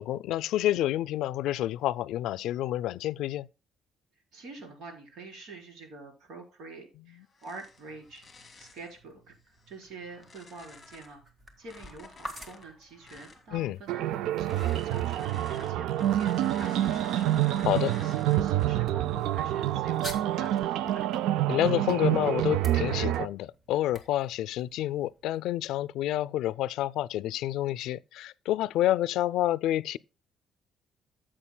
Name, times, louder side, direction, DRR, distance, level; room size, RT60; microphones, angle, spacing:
voice 1, 0.0-3.5 13.5-13.8 17.7-17.9 21.5-30.0, left 13 dB, 85° left, 0.3 m, -28 dB
voice 2, 4.3-8.2 8.6-11.2 11.6-21.2, right 3 dB, 65° right, 4.2 m, -46 dB
sound 1, 7.3-8.9 9.5-11.2 11.6-13.5 14.4-18.8 19.2-19.6 20.2-20.7, left 3 dB, 20° left, 2.4 m, -51 dB
sound 2, 7.6-25.4, equal, 20° right, 1.7 m, -51 dB
sound 3, 13.9-23.3, right 13 dB, 85° right, 0.4 m, -27 dB
14.5 x 7.6 x 2.2 m
cardioid pair, 170°, 0 cm